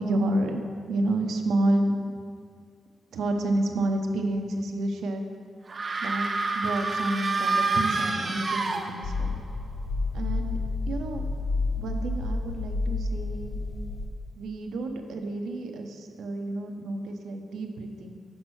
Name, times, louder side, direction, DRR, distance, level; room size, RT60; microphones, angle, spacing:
voice 1, 0.0-1.9 3.1-5.2 6.0-6.3 6.5-9.4 10.1-10.6 10.9-11.2 11.8-13.6 14.4-18.2, right 1 dB, 85° right, 4 dB, 0.7 m, -29 dB
sound 1, 5.7-9.4, right 3 dB, 30° right, 0.4 m, -28 dB
sound 2, 9.0-14.1, left 3 dB, 35° left, 0.6 m, -30 dB
6.0 x 5.2 x 6.3 m, 2.1 s
wide cardioid pair, 150°, 0 cm